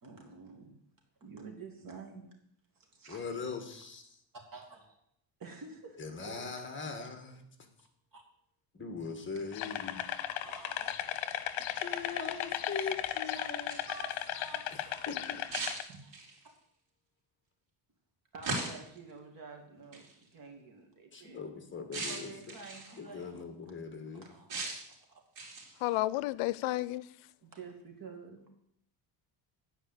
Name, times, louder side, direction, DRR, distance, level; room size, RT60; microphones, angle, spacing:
voice 1, 0.0-0.7 1.2-2.3 2.8-3.2 4.5-5.0 5.4-7.0 8.1-8.2 10.4-10.9 11.9-12.2 13.4-13.5 13.9-14.6 15.9-16.2 18.3-21.4 21.9-23.5 24.2-24.5 25.1-25.2 27.4-28.5, right 4 dB, 40° right, 2.5 m, -49 dB
voice 2, 3.1-4.2 6.0-7.5 8.7-10.1 11.7-13.8 14.8-15.4 21.1-22.6 23.0-24.3, left 4 dB, 25° left, 1.5 m, -41 dB
sound 1, 9.5-15.8, left 12 dB, 70° left, 1.0 m, -36 dB
sound 2, 13.5-14.0 15.5-16.5 18.4-19.0 19.9-20.1 21.9-23.0 24.5-24.9 25.4-25.8, right 3 dB, 65° right, 3.8 m, -38 dB
voice 3, 25.8-27.1, left 17 dB, 85° left, 0.6 m, -31 dB
9.9 x 5.1 x 8.0 m
cardioid pair, 150°, 49 cm